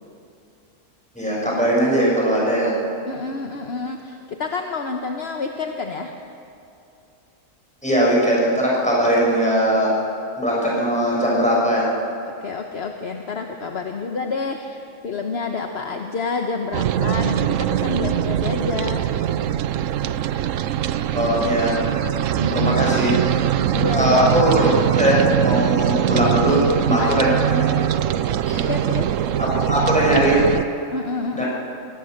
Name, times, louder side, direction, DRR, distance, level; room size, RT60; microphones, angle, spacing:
voice 1, 1.1-2.7 7.8-9.9 10.3-11.9 21.1-21.8 22.5-23.1 23.9-27.8 28.5-28.7 29.4-30.4 31.3-31.5, equal, 5° left, -5 dB, 6.4 m, -20 dB
voice 2, 3.1-6.1 12.4-19.0 22.4-22.8 23.7-24.3 27.0-27.2 28.7-29.1 30.9-31.4, left 4 dB, 50° left, 4 dB, 1.2 m, -28 dB
sound 1, 16.7-30.6, right 10 dB, 75° right, 1.0 m, -22 dB
22.0 x 18.5 x 6.6 m, 2.7 s
omnidirectional pair, 1.4 m